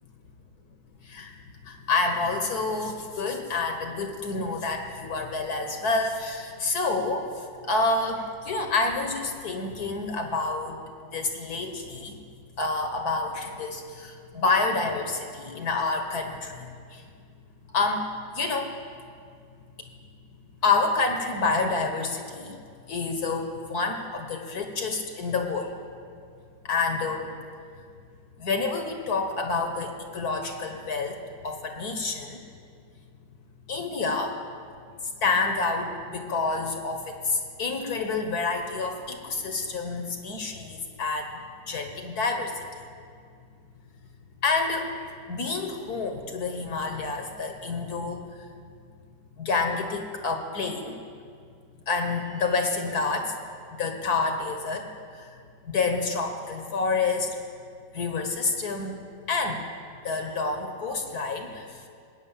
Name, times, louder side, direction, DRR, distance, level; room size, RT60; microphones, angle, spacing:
voice 1, 1.0-1.3 1.6-10.8 11.1-12.2 12.6-17.0 17.7-18.1 18.3-18.7 20.6-22.5 22.9-25.7 26.6-27.3 28.4-31.2 31.4-32.4 33.7-34.4 35.2-41.3 41.7-42.6 44.4-48.5 49.4-51.0 51.9-53.3 53.8-54.9 55.1-55.3 55.6-57.4 57.9-59.0 59.3-59.7 60.0-61.8, left 3 dB, 60° left, 4 dB, 1.7 m, -28 dB
19.5 x 9.5 x 7.4 m, 2.3 s
omnidirectional pair, 2.0 m